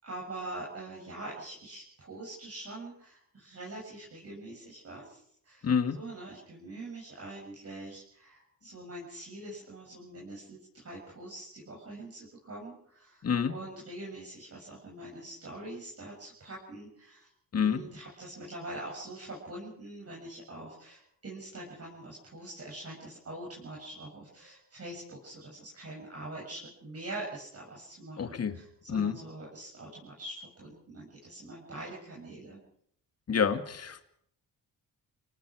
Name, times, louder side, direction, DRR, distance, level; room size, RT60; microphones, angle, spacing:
voice 1, 0.0-5.7 5.9-17.3 17.6-32.6, right 2 dB, 40° right, -3 dB, 7.6 m, -44 dB
voice 2, 5.6-6.0 13.2-13.5 17.5-17.8 28.2-28.5 28.9-29.2 33.3-34.1, left 6 dB, 45° left, 9 dB, 2.1 m, -28 dB
29.5 x 18.5 x 4.8 m, 0.65 s
cardioid pair, 85°, 35 cm